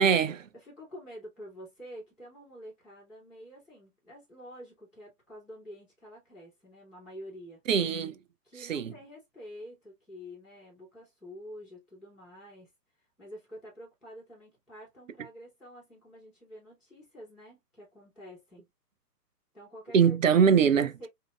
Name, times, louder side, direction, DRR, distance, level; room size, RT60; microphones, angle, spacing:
voice 1, 0.0-0.5 7.7-8.2 8.6-8.9 19.9-20.9, right 7 dB, 55° right, 0.6 m, -22 dB
voice 2, 0.5-7.6 8.4-12.7 13.2-18.6 19.5-21.1, equal, ahead, 0.5 m, -48 dB
5.0 x 2.7 x 2.3 m
figure-of-eight pair, 120°, 48 cm